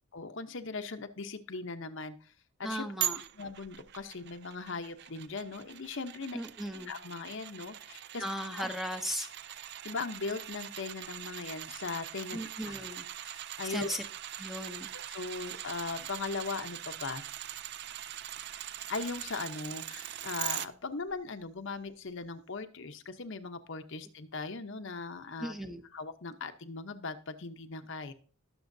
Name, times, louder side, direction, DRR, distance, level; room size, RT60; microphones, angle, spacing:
voice 1, 0.1-2.3 2.6-2.9 3.3-6.4 6.9-8.2 8.5-8.6 9.8-12.4 12.7-12.8 13.2-14.0 14.9-17.2 18.9-25.5 25.9-28.1, left 4 dB, 55° left, 8 dB, 0.8 m, -39 dB
voice 2, 2.6-3.2 6.3-6.9 8.2-9.3 12.3-13.1 13.7-14.0 14.4-14.9 25.4-25.8, equal, ahead, 6 dB, 0.7 m, -37 dB
sound 1, 3.0-20.7 21.1-21.2, right 13 dB, 50° right, 0.4 m, -41 dB
19.0 x 6.9 x 2.7 m, 0.41 s
head